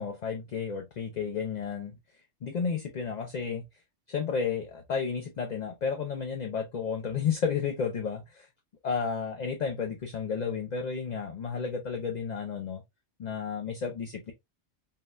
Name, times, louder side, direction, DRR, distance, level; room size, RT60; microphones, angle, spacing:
voice 1, 0.0-2.0 2.4-3.7 4.1-8.5 8.8-12.8 13.2-14.3, left 6 dB, 50° left, 0.5 m, -32 dB
5.5 x 2.2 x 2.2 m
omnidirectional pair, 1.3 m